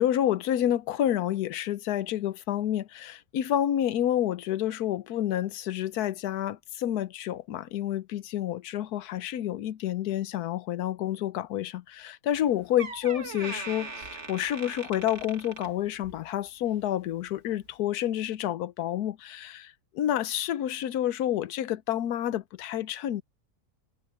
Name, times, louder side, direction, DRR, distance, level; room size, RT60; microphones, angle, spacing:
voice 1, 0.0-23.2, left 11 dB, 70° left, 1.2 m, -29 dB
Door, 12.3-12.4 12.8-16.3 16.6-16.9 17.6-17.7, right 3 dB, 40° right, 2.6 m, -40 dB
omnidirectional pair, 1.8 m